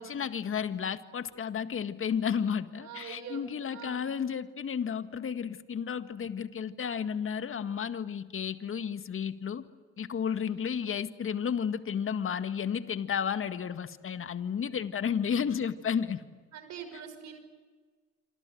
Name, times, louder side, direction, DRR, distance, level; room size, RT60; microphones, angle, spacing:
voice 1, 0.0-9.7 10.0-16.2, left 7 dB, 40° left, 10 dB, 1.8 m, -32 dB
voice 2, 2.8-4.0 10.5-10.7 14.9-15.1 16.5-17.4, right 7 dB, 60° right, 8 dB, 5.8 m, -45 dB
27.0 x 26.0 x 7.9 m, 1.4 s
hypercardioid pair, 65°, 32 cm